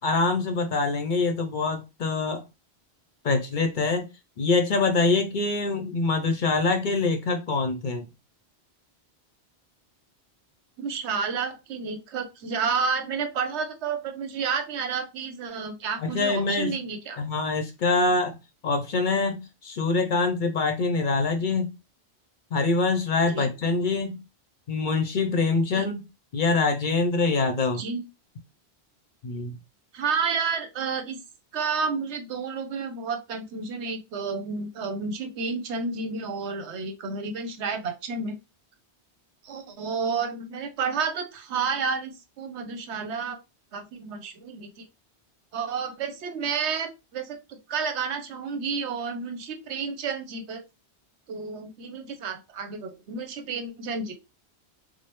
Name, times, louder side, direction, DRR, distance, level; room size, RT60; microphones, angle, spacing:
voice 1, 0.0-2.4 3.2-4.1 4.4-8.0 16.0-16.7 17.2-18.3 18.6-21.7 22.5-24.2 24.7-26.0 26.3-27.8 29.2-29.6, left 3 dB, 55° left, 0.6 m, -24 dB
voice 2, 10.8-17.2 23.3-23.5 25.7-25.9 27.8-28.0 29.9-31.2 31.5-38.4 39.4-43.4 43.7-44.9 45.5-50.6 51.3-54.2, right 5 dB, 80° right, 1.0 m, -30 dB
4.8 x 2.0 x 2.9 m
omnidirectional pair, 1.1 m